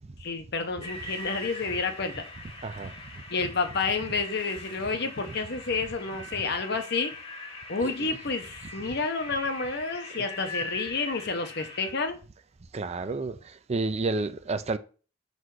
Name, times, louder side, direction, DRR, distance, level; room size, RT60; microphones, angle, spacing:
voice 1, 0.2-2.2 3.3-7.1 7.7-12.2, left 4 dB, 60° left, 0.9 m, -30 dB
sound 1, 0.8-11.9, left 2 dB, 30° left, 1.2 m, -42 dB
voice 2, 2.6-2.9 5.3-5.4 7.8-8.1 10.2-10.3 12.7-13.4 13.7-14.8, right 3 dB, 35° right, 0.5 m, -30 dB
5.6 x 4.1 x 4.8 m
head